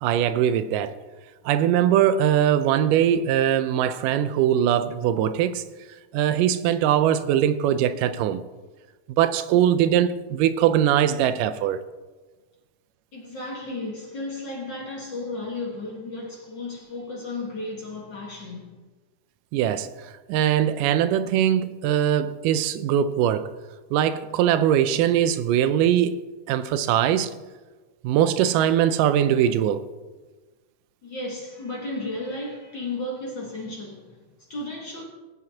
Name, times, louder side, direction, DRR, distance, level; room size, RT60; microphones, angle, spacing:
voice 1, 0.0-1.0 1.5-5.6 6.1-8.4 9.2-11.8 19.5-19.9 20.3-23.5 23.9-27.3 28.0-29.9, right 10 dB, 90° right, 2.2 m, -21 dB
voice 2, 13.1-18.8 31.0-35.0, left 2 dB, 45° left, 1.7 m, -34 dB
19.5 x 9.1 x 2.8 m
omnidirectional pair, 3.7 m